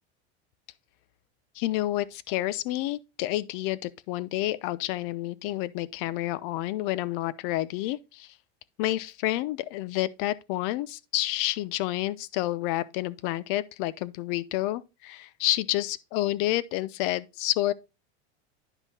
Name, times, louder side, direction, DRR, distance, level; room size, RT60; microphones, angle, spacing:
voice 1, 1.6-8.3 8.8-17.7, left 16 dB, 55° left, 0.5 m, -29 dB
10.0 x 5.4 x 2.7 m
supercardioid pair, 140°, 32 cm